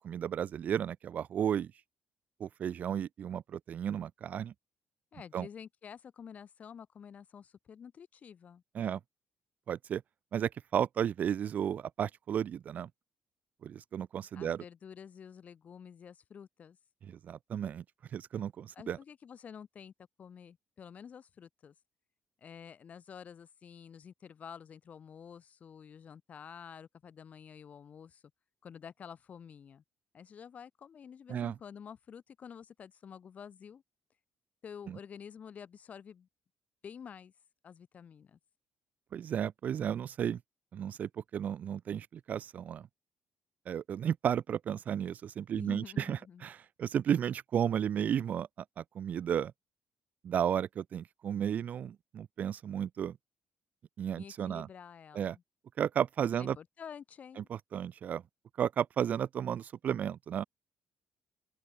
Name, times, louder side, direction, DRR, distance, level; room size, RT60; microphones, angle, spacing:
voice 1, 0.0-1.7 2.4-4.5 5.3-5.5 8.7-9.0 9.7-10.0 10.3-12.9 13.6-14.6 17.2-17.8 18.1-19.0 31.3-31.5 34.9-35.0 39.1-40.4 40.7-42.9 43.7-48.5 48.8-49.5 50.2-53.2 54.0-54.7 55.1-55.4 55.8-56.6 57.4-57.5 57.7-58.2 58.6-60.4, right 9 dB, 50° right, 0.3 m, -33 dB
voice 2, 5.1-9.0 14.3-16.8 18.7-19.9 20.2-21.7 22.4-28.2 28.6-29.8 30.1-33.8 34.6-36.3 36.8-37.3 37.6-38.4 45.5-46.4 54.2-55.4 56.4-57.5, left 7 dB, 45° left, 3.9 m, -49 dB
open air
cardioid pair, 105°, 3 cm